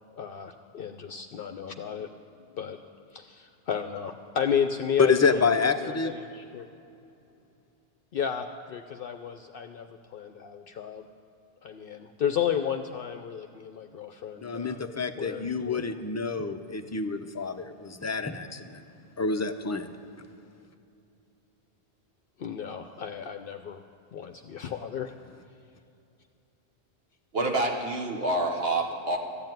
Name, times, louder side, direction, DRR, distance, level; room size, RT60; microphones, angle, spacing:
voice 1, 0.1-2.1 2.5-2.8 3.1-5.5 5.8-6.7 8.1-11.0 11.6-14.8 15.1-16.0 22.4-23.8 24.1-25.1, left 8 dB, 60° left, 7 dB, 0.7 m, -33 dB
voice 2, 5.0-6.1 14.4-18.8 19.2-19.9, left 5 dB, 20° left, 7 dB, 0.4 m, -27 dB
voice 3, 27.3-29.2, right 2 dB, 65° right, 1 dB, 1.3 m, -27 dB
13.5 x 7.9 x 9.1 m, 2.6 s
omnidirectional pair, 1.1 m